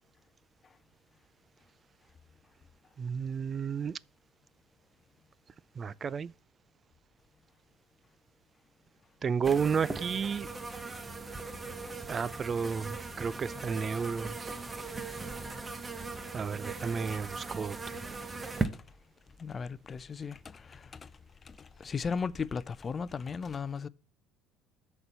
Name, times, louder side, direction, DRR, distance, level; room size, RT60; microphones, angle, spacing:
voice 1, 3.0-4.0 5.8-6.3 9.2-10.5 12.1-14.5 16.3-17.9, right 6 dB, 35° right, 0.3 m, -32 dB
sound 1, 9.4-18.7, right 3 dB, 20° right, 1.0 m, -39 dB
voice 2, 19.4-20.8 21.8-23.9, left 5 dB, 35° left, 0.5 m, -36 dB
6.6 x 4.5 x 6.7 m
hypercardioid pair, 65°, 0 cm